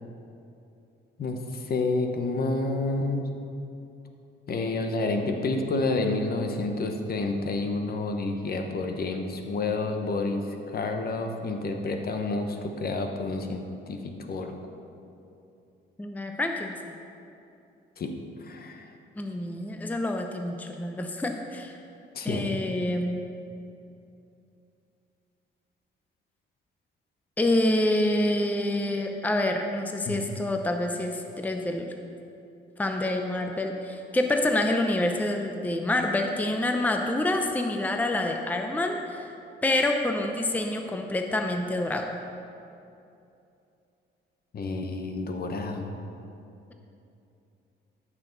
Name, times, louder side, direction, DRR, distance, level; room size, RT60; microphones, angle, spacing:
voice 1, 1.2-3.3 4.5-14.5 18.0-18.9 22.1-22.6 30.1-30.2 44.5-46.0, left 3 dB, 50° left, 4 dB, 1.0 m, -29 dB
voice 2, 16.0-16.9 19.2-21.8 22.2-23.2 27.4-31.9 32.8-39.2 39.6-42.1, left 1 dB, 10° left, 4 dB, 0.6 m, -27 dB
13.5 x 6.0 x 4.0 m, 2.7 s
cardioid pair, 90°, 20 cm